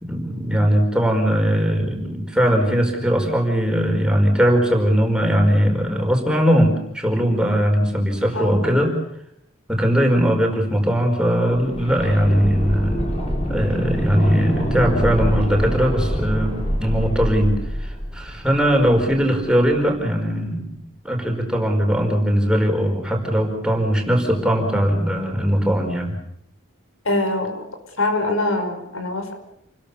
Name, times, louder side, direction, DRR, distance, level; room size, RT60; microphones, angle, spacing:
voice 1, 0.0-8.9 9.7-13.1 13.5-20.6 21.0-26.1, equal, 5° right, 2 dB, 4.8 m, -20 dB
voice 2, 8.3-8.8 27.0-27.6 28.0-29.3, left 2 dB, 80° left, 5 dB, 5.7 m, -23 dB
sound 1, 11.5-19.3 19.6-19.7, equal, 30° left, 6.2 m, -25 dB
29.0 x 21.5 x 7.1 m, 0.76 s
head